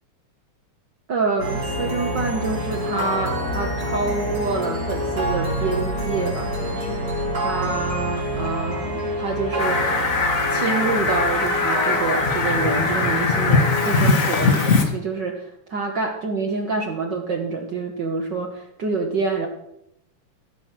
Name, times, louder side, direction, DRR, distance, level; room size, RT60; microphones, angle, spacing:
voice 1, 1.1-10.0 10.5-19.5, right 4 dB, 70° right, 1 dB, 1.0 m, -27 dB
sound 1, 1.4-14.7, equal, 50° right, 5.6 m, -27 dB
Fowl, 9.6-14.8, left 3 dB, 60° left, 0.8 m, -21 dB
16.5 x 6.5 x 5.9 m, 0.81 s
omnidirectional pair, 3.8 m